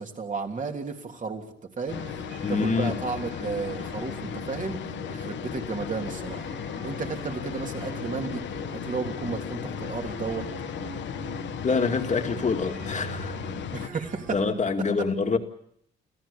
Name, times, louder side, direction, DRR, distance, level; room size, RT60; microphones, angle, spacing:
voice 1, 0.0-1.4 1.8-2.0 2.5-4.8 5.1-6.5 6.8-8.4 8.7-10.5 13.7-14.4, right 4 dB, 40° right, 3 dB, 3.3 m, -33 dB
sound 1, 1.9-13.9, left 10 dB, 65° left, 1.1 m, -36 dB
sound 2, 1.9-14.5, right 6 dB, 80° right, 3.2 m, -43 dB
voice 2, 2.4-3.0 11.6-13.4 14.3-15.4, left 4 dB, 35° left, 5 dB, 2.3 m, -26 dB
29.5 x 14.5 x 7.1 m, 0.70 s
cardioid pair, 90°, 20 cm